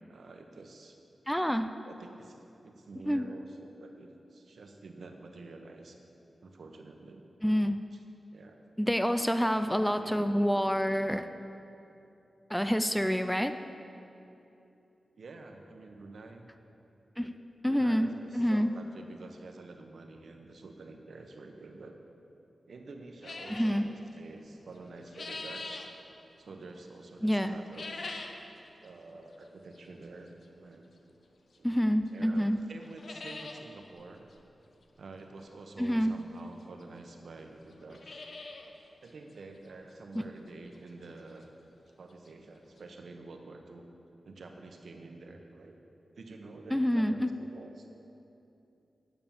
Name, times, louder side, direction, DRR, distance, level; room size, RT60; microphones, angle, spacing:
voice 1, 0.1-0.9 1.8-6.0 6.4-7.2 7.9-8.0 8.3-8.6 9.8-10.3 15.2-16.5 17.2-17.3 17.6-21.9 22.7-25.9 26.4-28.0 28.8-30.3 30.6-30.9 31.6-34.2 35.0-38.2 39.0-41.5 42.0-43.9 44.2-45.8 46.1-47.9, right 3 dB, 70° right, 4 dB, 1.0 m, -48 dB
voice 2, 1.3-1.7 3.0-3.3 7.4-7.8 8.8-11.3 12.5-13.5 17.2-17.3 17.6-18.1 18.3-18.7 23.5-23.9 27.2-27.5 31.6-32.6 35.8-36.1 46.7-47.3, equal, 5° left, 9 dB, 0.4 m, -27 dB
sound 1, 23.2-23.8 24.8-25.9 27.6-28.4 28.8-28.9 29.8-29.9 31.5-31.6 32.1-32.2 32.4-32.5 32.8-33.6 34.0-34.1 34.3-34.4 35.9-36.0 36.8-36.9 37.1-37.2 37.7-38.7 39.1-39.2 39.7-39.8 40.2-40.3 42.0-42.1 42.3-42.4 42.8-42.9, left 3 dB, 60° left, 0.8 m, -42 dB
9.3 x 6.9 x 7.3 m, 2.8 s
wide cardioid pair, 100°, 0 cm